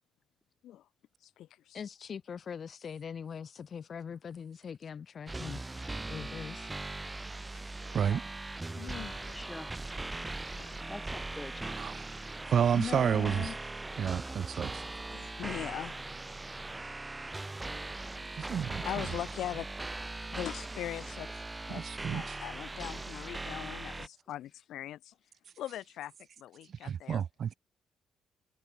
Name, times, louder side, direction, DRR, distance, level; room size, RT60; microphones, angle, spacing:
voice 1, 1.2-1.8 7.5-8.2 8.7-9.5 10.6-10.9 15.1-15.9 18.5-19.7 20.3-21.3 21.6-25.1 25.6-26.1 26.4-27.2, left 12 dB, 80° left, 2.5 m, -41 dB
voice 2, 1.7-6.7 12.7-13.6 16.8-16.9, left 7 dB, 50° left, 4.8 m, -41 dB
sound 1, 5.3-24.1, right 2 dB, 15° right, 2.7 m, -40 dB
voice 3, 9.3-9.9 10.5-11.8 14.2-14.3, left 1 dB, 10° left, 4.1 m, -46 dB
voice 4, 11.8-12.2 12.5-13.5 14.0-14.8 18.4-18.8 21.7-22.4 26.8-27.5, right 8 dB, 55° right, 0.8 m, -30 dB
cardioid pair, 90°, 0 cm